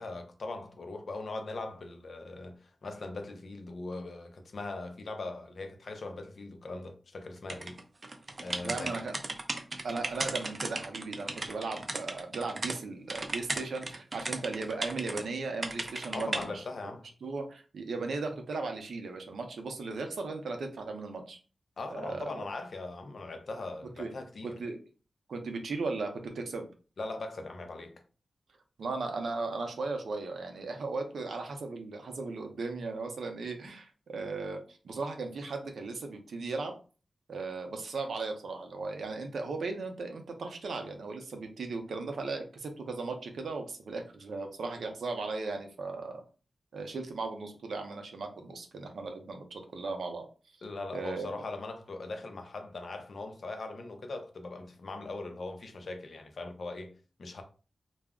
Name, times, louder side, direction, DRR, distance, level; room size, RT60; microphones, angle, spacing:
voice 1, 0.0-7.8 8.4-9.0 16.1-17.1 21.8-24.6 27.0-28.0 50.6-57.4, left 3 dB, 60° left, 0.5 m, -40 dB
sound 1, 7.5-12.8 13.1-15.2 15.6-16.4, right 2 dB, 35° right, 0.4 m, -36 dB
voice 2, 8.6-9.2 9.8-16.6 17.2-21.4 21.9-22.4 24.0-24.1 24.4-24.8 25.3-26.7 28.8-36.7 37.3-46.2 46.7-50.3 50.9-51.4, right 3 dB, 90° right, 0.5 m, -37 dB
2.3 x 2.0 x 3.5 m
wide cardioid pair, 120°, 0 cm